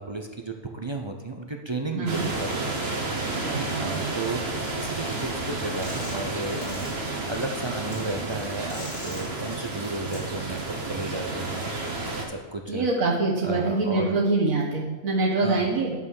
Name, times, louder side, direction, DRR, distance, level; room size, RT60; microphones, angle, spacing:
voice 1, 0.0-3.0 3.6-11.9 12.3-12.9 13.4-14.2 15.4-15.7, right 2 dB, 35° right, 3 dB, 0.5 m, -34 dB
voice 2, 1.9-2.3 3.4-4.0 12.7-15.9, right 3 dB, 85° right, -3 dB, 1.6 m, -25 dB
sound 1, 2.1-12.2, right 2 dB, 50° right, 1.7 m, -31 dB
sound 2, 4.8-4.9 5.8-6.3 6.6-6.9 7.9-8.0 8.7-9.2 10.1-10.2, left 1 dB, 80° left, 3.8 m, -41 dB
9.7 x 5.5 x 6.4 m, 1.3 s
omnidirectional pair, 1.4 m